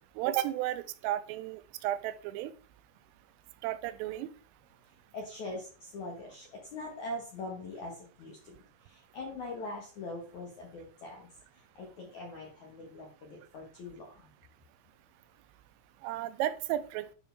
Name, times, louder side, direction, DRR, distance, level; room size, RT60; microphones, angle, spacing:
voice 1, 0.2-2.5 3.6-4.3 16.0-17.1, right 13 dB, 90° right, 13 dB, 3.2 m, -33 dB
voice 2, 5.1-8.5 8.8-11.3 11.5-14.3, left 2 dB, 70° left, -1 dB, 1.8 m, -42 dB
11.5 x 4.8 x 3.4 m, 0.40 s
omnidirectional pair, 5.7 m